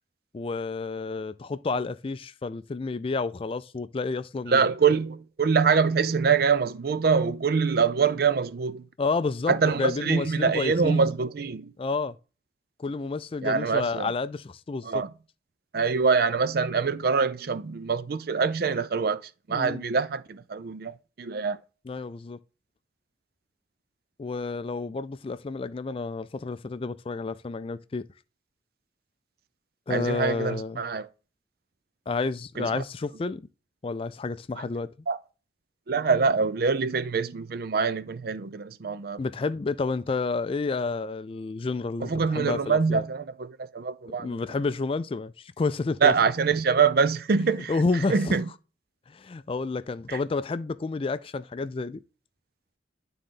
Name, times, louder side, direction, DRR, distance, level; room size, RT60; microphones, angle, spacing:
voice 1, 0.3-4.7 9.0-11.0 11.8-12.2 12.8-15.0 19.5-19.8 21.9-22.4 24.2-28.1 29.9-30.8 32.1-33.5 33.8-34.9 39.2-43.0 44.2-46.1 47.7-48.4 49.1-52.0, left 3 dB, 30° left, 0.3 m, -30 dB
voice 2, 4.5-8.8 9.5-11.7 13.4-14.1 14.8-15.1 15.7-19.2 19.5-21.6 29.9-31.1 32.6-32.8 34.6-34.7 35.1-35.2 35.9-39.2 42.0-44.4 46.0-47.7 48.1-48.5 50.1-50.2, right 5 dB, 60° right, 0.5 m, -24 dB
11.0 x 3.8 x 3.8 m
head